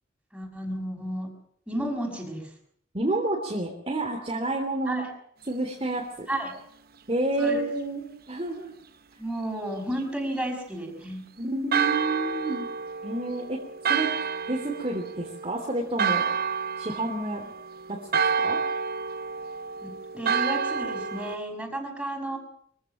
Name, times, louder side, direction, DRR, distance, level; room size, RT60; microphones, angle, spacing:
voice 1, 0.3-1.3 1.7-2.5 4.9-5.1 6.3-6.6 7.4-7.6 9.2-11.2 19.8-22.4, right 1 dB, 5° right, 1 dB, 5.7 m, -32 dB
voice 2, 2.9-5.1 5.5-6.3 7.1-8.7 11.4-12.7 13.0-13.6 13.9-14.1 14.5-16.3 16.8-17.5 17.9-18.6, right 2 dB, 30° right, 0 dB, 3.2 m, -29 dB
Church bell, 11.7-21.4, right 6 dB, 50° right, 0.8 m, -29 dB
24.0 x 15.5 x 7.7 m, 0.68 s
head